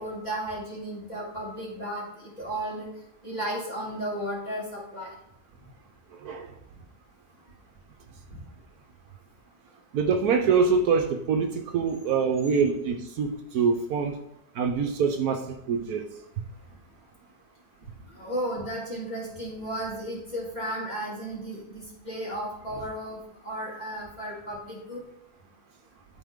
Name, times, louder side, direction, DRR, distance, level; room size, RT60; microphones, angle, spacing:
voice 1, 0.0-2.9 3.2-5.1 18.2-23.2 23.4-25.0, right 1 dB, 25° left, -6 dB, 3.0 m, -34 dB
voice 2, 6.2-6.5 9.9-14.2 14.5-16.1 16.4-16.5, right 5 dB, 70° right, 5 dB, 1.2 m, -25 dB
12.5 x 4.3 x 3.6 m, 0.84 s
omnidirectional pair, 1.7 m